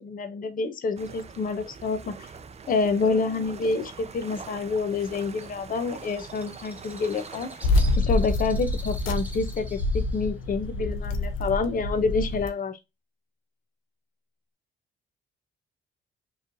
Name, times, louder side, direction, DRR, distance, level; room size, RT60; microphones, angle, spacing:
voice 1, 0.0-2.3 2.7-7.5 8.0-12.8, left 4 dB, 45° left, 0.8 m, -28 dB
sound 1, 1.0-8.0, right 5 dB, 30° right, 0.6 m, -43 dB
Bird, 5.4-12.6, right 1 dB, 10° right, 1.0 m, -48 dB
sound 2, 7.6-12.5, left 2 dB, 90° left, 0.7 m, -26 dB
4.7 x 3.2 x 2.7 m
cardioid pair, 90°, 20 cm